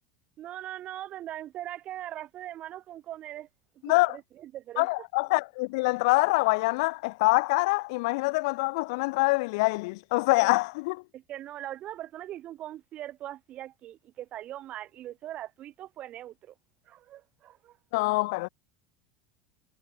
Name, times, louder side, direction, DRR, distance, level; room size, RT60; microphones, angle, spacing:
voice 1, 0.4-3.5 3.8-4.9 11.1-16.5 16.9-17.8, right 13 dB, 45° right, 4.2 m, -41 dB
voice 2, 3.8-4.2 4.8-11.0 17.9-18.5, left 25 dB, 65° left, 1.7 m, -25 dB
hypercardioid pair, 80°, 3 cm